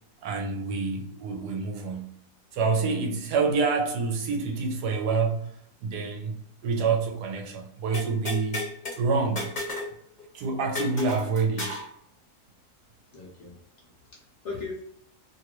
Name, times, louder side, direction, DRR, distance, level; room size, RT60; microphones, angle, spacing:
voice 1, 0.2-2.1 2.5-5.5 5.8-8.6 9.0-9.5 10.3-11.8 14.5-14.6, right 4 dB, 85° right, 1.2 m, -27 dB
sound 1, 7.9-9.0 9.4-9.9 10.2-10.3 10.7-11.9, left 2 dB, 30° left, 1.0 m, -33 dB
voice 2, 13.1-14.8, left 4 dB, 65° left, 0.7 m, -40 dB
2.8 x 2.5 x 3.0 m
omnidirectional pair, 1.7 m